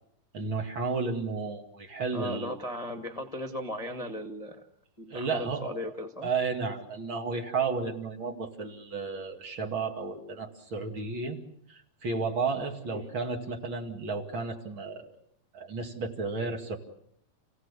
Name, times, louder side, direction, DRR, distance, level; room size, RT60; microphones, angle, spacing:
voice 1, 0.3-2.5 5.1-5.9 6.2-11.4 11.7-15.1 15.5-16.8, right 4 dB, 40° right, 2 dB, 2.9 m, -33 dB
voice 2, 2.1-4.7 5.0-6.3 12.9-13.1, left 1 dB, 40° left, 3 dB, 0.4 m, -37 dB
29.5 x 17.0 x 8.3 m, 0.71 s
omnidirectional pair, 3.9 m